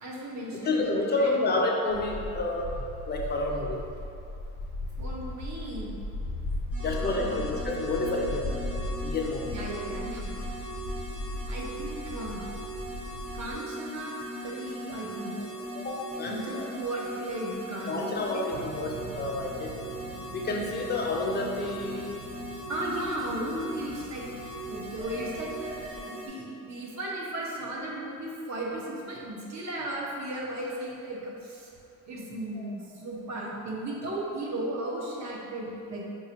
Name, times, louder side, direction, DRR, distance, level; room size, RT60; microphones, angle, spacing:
voice 1, 0.0-1.6 5.0-5.9 7.0-7.4 9.5-10.2 11.5-12.4 13.3-14.1 14.4-15.3 16.2-18.4 22.7-24.2 24.7-25.7 26.0-31.7 32.1-36.0, right 1 dB, 65° right, -3 dB, 0.7 m, -35 dB
voice 2, 0.5-2.8 3.0-3.8 6.8-8.7 9.0-9.5 15.8-16.7 17.8-19.7 20.3-22.1 32.6-32.8, left 2 dB, 35° left, 0 dB, 0.5 m, -30 dB
sound 1, 1.9-13.6, left 1 dB, 70° left, 0.7 m, -36 dB
sound 2, 6.7-26.3, right 1 dB, 50° right, 1.1 m, -40 dB
sound 3, 18.5-25.6, right 4 dB, 30° right, 0.4 m, -46 dB
4.0 x 2.4 x 2.8 m, 2.5 s
cardioid pair, 90°, 30 cm